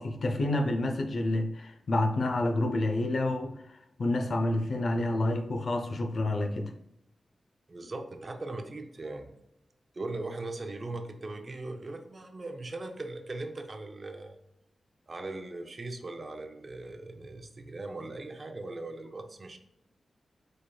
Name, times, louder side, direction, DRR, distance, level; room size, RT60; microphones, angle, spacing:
voice 1, 0.0-3.5 4.0-6.7, left 1 dB, 60° left, 0.6 m, -28 dB
voice 2, 7.7-9.3 9.9-14.4 15.1-19.6, right 2 dB, 40° right, 0.6 m, -39 dB
5.1 x 4.0 x 2.3 m
wide cardioid pair, 90°, 0 cm